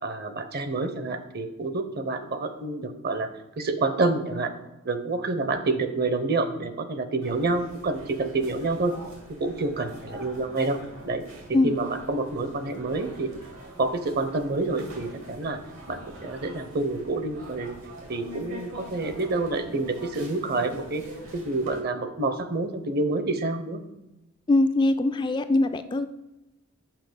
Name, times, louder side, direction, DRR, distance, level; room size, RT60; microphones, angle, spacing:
voice 1, 0.0-3.3 3.6-4.5 4.8-8.9 9.4-10.8 11.0-11.2 11.6-13.3 13.8-15.6 15.9-17.8 18.1-21.0 21.3-23.8, right 3 dB, 50° right, 9 dB, 0.8 m, -28 dB
sound 1, 7.2-21.8, right 1 dB, 80° right, 2.4 m, -44 dB
voice 2, 24.5-26.1, left 2 dB, 20° left, 9 dB, 0.3 m, -22 dB
5.8 x 5.6 x 6.8 m, 0.96 s
head